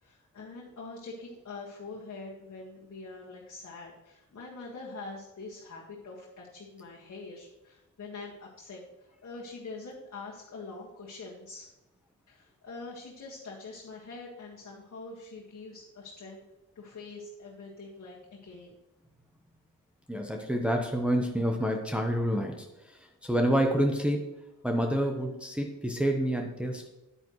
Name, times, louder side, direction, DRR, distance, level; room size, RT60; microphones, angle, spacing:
voice 1, 0.0-11.7 12.3-16.4 16.8-18.7, left 3 dB, 60° left, -4 dB, 1.7 m, -44 dB
voice 2, 20.1-22.7 23.2-24.2 24.6-26.9, equal, 5° right, 2 dB, 1.0 m, -28 dB
9.8 x 9.0 x 3.1 m, 0.98 s
cardioid pair, 90°, 31 cm